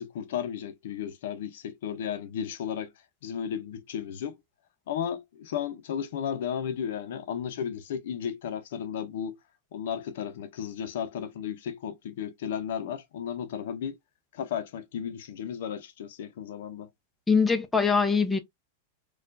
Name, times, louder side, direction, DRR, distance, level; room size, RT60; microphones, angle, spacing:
voice 1, 0.0-2.9 3.2-4.4 4.9-9.4 9.7-14.0 14.3-16.9, left 8 dB, 70° left, 0.7 m, -34 dB
voice 2, 17.3-18.4, left 5 dB, 10° left, 0.6 m, -22 dB
4.4 x 2.4 x 2.5 m
supercardioid pair, 145°, 0 cm